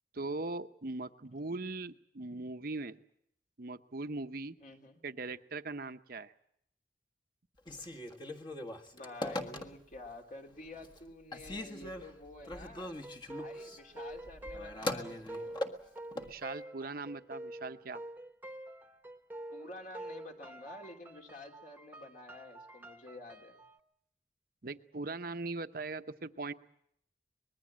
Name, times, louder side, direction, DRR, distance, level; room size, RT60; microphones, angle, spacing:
voice 1, 0.1-3.0 3.6-4.5 5.0-6.3 16.1-18.0 24.6-26.5, right 3 dB, 55° right, 9 dB, 0.9 m, -40 dB
voice 2, 4.6-5.0 8.9-12.9 13.3-15.6 19.5-23.6, left 2 dB, 45° left, 2 dB, 3.1 m, -49 dB
Telephone, 7.6-10.1 10.5-11.0 11.3-16.3, left 1 dB, 25° left, 1.6 m, -41 dB
sound 1, 12.8-23.8, right 1 dB, 10° right, 1.2 m, -47 dB
25.0 x 21.0 x 7.5 m, 0.71 s
head